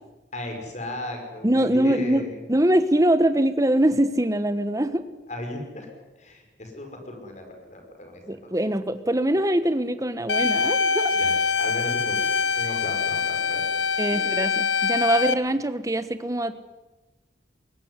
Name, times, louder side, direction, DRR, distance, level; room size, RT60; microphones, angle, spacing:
voice 1, 0.3-2.4 5.3-5.9 6.2-8.5 10.5-10.7 11.1-11.3 11.6-12.2 12.6-14.3, left 1 dB, 40° left, 4 dB, 5.5 m, -36 dB
voice 2, 1.4-5.0 8.3-11.2 14.0-16.5, right 1 dB, 20° right, 11 dB, 1.3 m, -23 dB
sound 1, 10.3-15.3, left 5 dB, 90° left, 1.1 m, -24 dB
22.0 x 18.5 x 9.8 m, 1.1 s
head